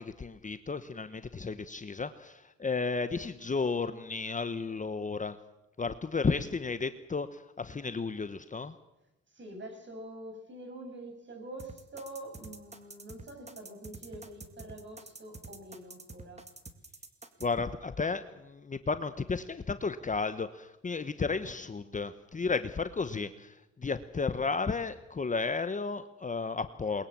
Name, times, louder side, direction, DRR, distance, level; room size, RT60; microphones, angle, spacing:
voice 1, 0.0-5.4 5.8-8.8 17.4-27.1, left 4 dB, 25° left, 11 dB, 1.0 m, -33 dB
voice 2, 9.3-16.4, right 1 dB, 40° right, 4 dB, 7.5 m, -45 dB
sound 1, 11.6-17.5, right 3 dB, 20° right, 2.3 m, -47 dB
21.5 x 21.5 x 7.5 m, 0.92 s
cardioid pair, 90°, 30 cm